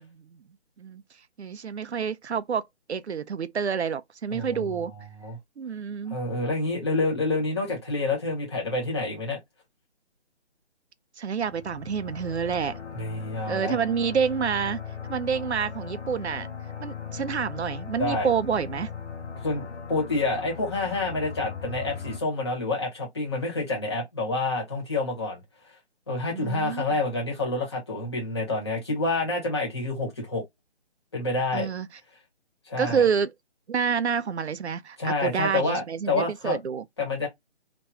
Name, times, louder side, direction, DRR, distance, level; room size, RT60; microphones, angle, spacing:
voice 1, 1.4-2.6 2.9-4.9 5.6-6.2 11.2-12.8 13.5-16.5 16.8-18.9 26.3-26.8 31.5-31.9 32.8-33.3 33.7-36.8, right 7 dB, 75° right, 0.6 m, -28 dB
voice 2, 4.3-4.6 5.2-5.4 6.1-9.4 12.9-13.8 18.0-18.3 19.4-25.4 26.1-30.4 31.1-31.7 32.7-33.0 35.0-36.6 37.0-37.3, left 2 dB, 25° left, 1.8 m, -28 dB
sound 1, 11.4-22.2, left 7 dB, 80° left, 1.2 m, -38 dB
3.4 x 3.0 x 2.7 m
hypercardioid pair, 180°, 34 cm